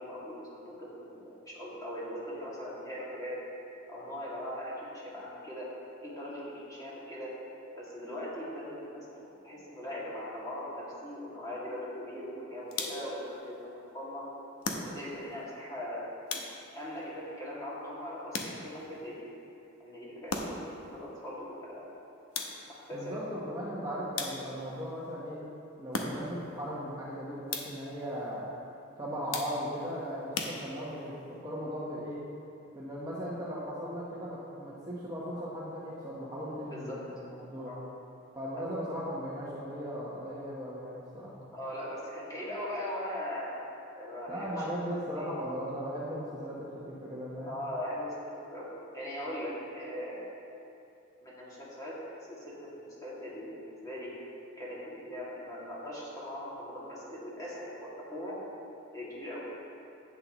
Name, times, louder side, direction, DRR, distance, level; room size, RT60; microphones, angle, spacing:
voice 1, 0.0-3.5 3.9-7.4 7.8-14.3 14.8-16.1 16.7-19.3 19.8-21.9 22.9-23.2 23.6-23.9 36.7-37.1 37.6-37.8 38.5-38.6 41.5-43.6 44.0-45.3 47.4-50.3 51.2-54.2 54.6-58.4 58.9-59.5, equal, 15° left, -7 dB, 2.2 m, -40 dB
sound 1, 12.7-13.2 14.6-15.3 16.3-16.9 18.3-18.9 20.3-20.8 22.3-22.9 24.2-24.7 25.9-26.5 27.5-28.0 29.3-29.8 30.3-31.1, left 4 dB, 90° left, 0.9 m, -37 dB
voice 2, 22.9-25.4 25.8-28.4 29.0-31.1 31.4-32.2 32.7-37.7 38.3-41.3 44.3-47.6, equal, 15° right, -7 dB, 1.1 m, -37 dB
11.0 x 8.4 x 3.0 m, 2.8 s
head